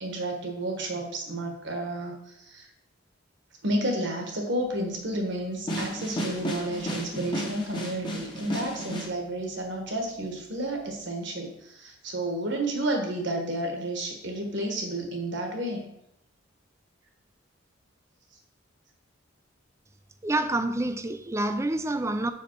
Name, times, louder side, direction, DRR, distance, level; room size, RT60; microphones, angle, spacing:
voice 1, 0.0-2.7 3.6-15.9, right 1 dB, 60° right, 1.2 m, -31 dB
sound 1, 5.7-9.1, equal, 25° left, 0.9 m, -33 dB
voice 2, 20.2-22.3, right 2 dB, 15° right, 0.3 m, -27 dB
5.3 x 5.0 x 4.4 m
head